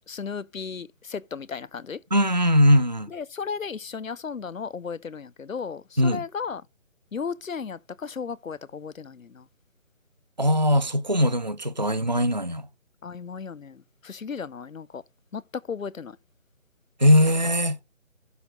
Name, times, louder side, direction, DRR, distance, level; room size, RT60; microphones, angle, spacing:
voice 1, 0.0-2.0 3.1-6.6 7.1-9.5 13.0-15.0 15.3-16.2, left 6 dB, 90° left, 0.7 m, -35 dB
voice 2, 2.1-3.1 6.0-6.2 10.4-12.6 17.0-17.8, equal, 35° right, 0.4 m, -20 dB
12.0 x 4.2 x 4.7 m
figure-of-eight pair, 155°, 39 cm